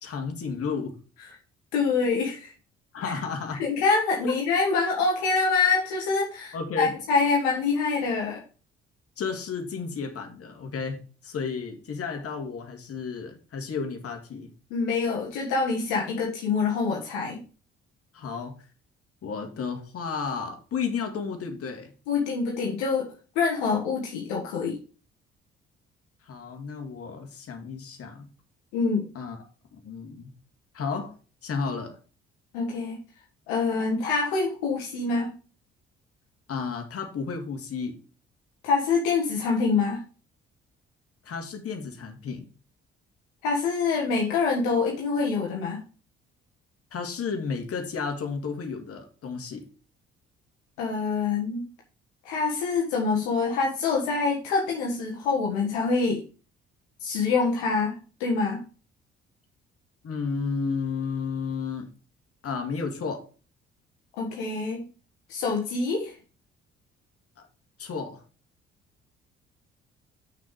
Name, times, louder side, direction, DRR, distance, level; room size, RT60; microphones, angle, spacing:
voice 1, 0.0-1.0 2.9-3.6 4.2-4.4 6.5-7.0 9.2-14.5 18.1-18.6 19.2-21.9 26.2-28.3 29.1-29.4 29.7-30.3 30.7-31.1 31.4-32.0 36.5-38.0 41.2-42.5 46.9-49.7 60.0-61.9 62.4-63.3 67.4-67.5 67.8-68.2, left 5 dB, 45° left, 2.2 m, -32 dB
voice 2, 1.7-2.5 3.0-3.2 3.6-8.4 14.7-17.4 22.1-24.8 28.7-29.1 32.5-33.0 33.5-35.3 38.6-40.0 43.4-45.8 50.8-51.6 52.2-56.2 57.0-58.6 64.2-64.8 65.3-66.2, left 4 dB, 70° left, 1.5 m, -25 dB
6.9 x 6.3 x 4.8 m
figure-of-eight pair, 45°, 31 cm